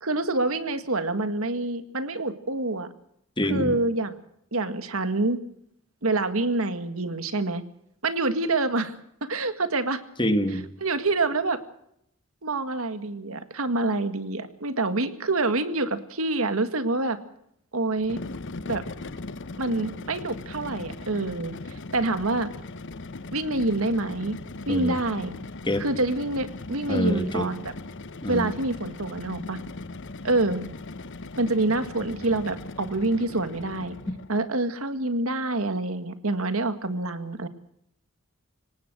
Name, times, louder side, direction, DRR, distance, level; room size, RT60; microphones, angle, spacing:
voice 1, 0.0-2.9 3.4-4.2 4.5-5.4 6.0-7.6 8.0-8.9 9.3-10.0 10.8-11.6 12.4-17.2 17.7-18.2 18.7-18.8 19.6-22.5 23.3-24.4 24.7-25.3 25.8-27.7 28.3-29.6 30.2-30.6 31.4-34.0 34.3-37.5, right 2 dB, 70° right, 10 dB, 1.9 m, -26 dB
voice 2, 3.4-3.8 10.2-10.7 24.7-25.0 25.6-25.8 26.9-27.5 28.2-28.5 34.1-34.2, left 1 dB, 20° left, 9 dB, 1.7 m, -25 dB
sound 1, 18.0-34.4, left 2 dB, 60° left, 1.1 m, -39 dB
24.0 x 19.0 x 6.2 m, 0.72 s
head